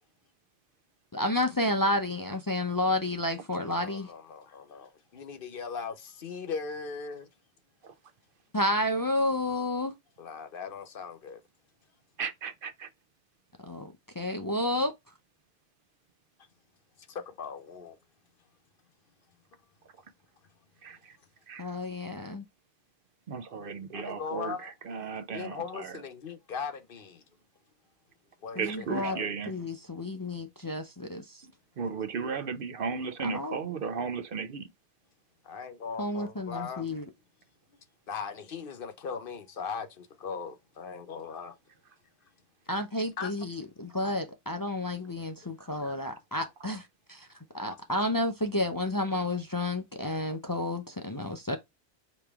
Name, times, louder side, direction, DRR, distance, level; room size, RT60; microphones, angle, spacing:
voice 1, 1.1-4.1 8.5-9.9 13.6-14.9 21.6-22.4 28.6-29.2 29.5-31.2 33.2-33.5 36.0-37.0 42.7-47.3 47.5-51.6, left 1 dB, 25° left, 0.5 m, -31 dB
voice 2, 3.6-7.3 10.2-11.4 17.1-18.0 23.9-24.7 25.3-27.2 28.4-29.3 35.4-36.8 38.1-41.6 43.2-43.3 45.8-45.9, left 5 dB, 60° left, 0.9 m, -39 dB
voice 3, 12.2-12.9 20.8-21.1 21.5-21.6 23.3-26.0 28.6-29.5 31.4-34.7, right 5 dB, 60° right, 0.8 m, -35 dB
5.2 x 3.0 x 3.4 m
omnidirectional pair, 1.1 m